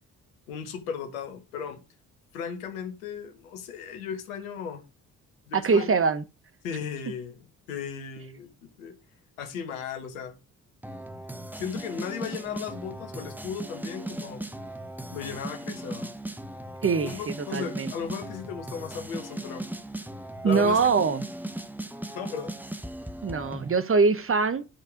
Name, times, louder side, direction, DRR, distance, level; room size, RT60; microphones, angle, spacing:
voice 1, 0.5-1.8 2.3-4.8 5.5-6.1 6.6-7.4 7.7-8.5 8.8-8.9 9.4-10.3 11.6-14.5 15.1-16.1 17.0-19.6 20.4-20.9 22.1-22.5, left 7 dB, 85° left, 1.4 m, -36 dB
voice 2, 5.5-6.2 16.8-17.9 20.4-21.3 23.2-24.6, right 4 dB, 30° right, 1.1 m, -23 dB
sound 1, 10.8-23.8, right 1 dB, 5° right, 1.1 m, -38 dB
10.5 x 4.7 x 5.0 m
hypercardioid pair, 45°, 41 cm